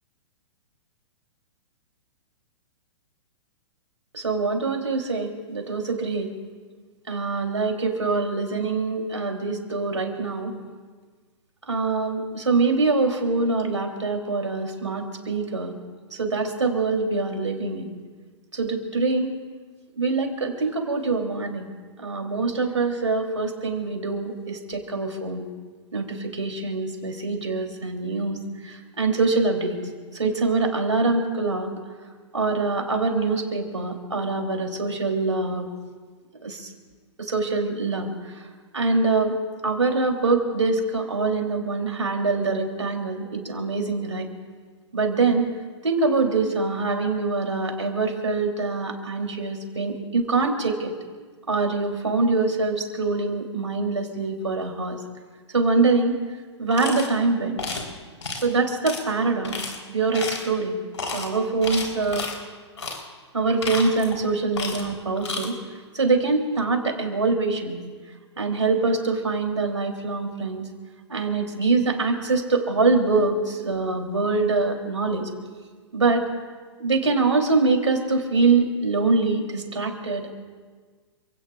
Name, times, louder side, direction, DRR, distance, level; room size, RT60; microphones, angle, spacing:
voice 1, 4.1-6.3 7.1-10.5 11.7-15.7 16.1-17.9 18.5-19.3 20.0-21.7 22.0-25.4 25.9-28.4 28.6-29.8 30.1-31.7 32.3-35.7 36.4-36.7 37.3-38.1 38.7-39.3 39.6-44.3 44.9-45.5 45.8-50.9 51.5-55.0 55.5-56.2 56.6-57.6 58.4-60.8 61.1-62.2 63.3-65.6 65.9-67.8 68.4-70.6 71.1-75.3 75.9-76.3 76.8-80.3, right 3 dB, 90° right, 2 dB, 3.4 m, -24 dB
sound 1, 56.7-57.1 57.6-57.9 58.2-58.5 58.9-59.0 59.4-59.8 60.1-60.5 60.9-61.3 61.6-62.4 62.8-63.0 63.4-64.2 64.5-64.9 65.2-65.5, left 3 dB, 80° left, 4.0 m, -31 dB
28.5 x 17.5 x 2.5 m, 1.5 s
figure-of-eight pair, 115°, 15 cm